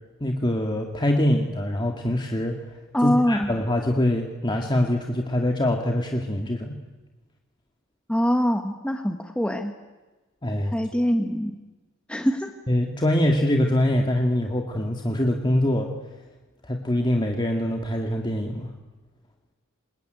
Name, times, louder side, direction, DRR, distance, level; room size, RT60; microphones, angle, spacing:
voice 1, 0.2-2.5 3.0-6.7 10.4-10.7 12.7-15.9 16.6-18.7, left 1 dB, 20° left, 2 dB, 2.0 m, -24 dB
voice 2, 2.9-3.5 8.1-9.7 10.6-11.6 12.1-12.5, equal, 5° left, 5 dB, 1.3 m, -23 dB
26.5 x 21.0 x 9.2 m, 1.2 s
head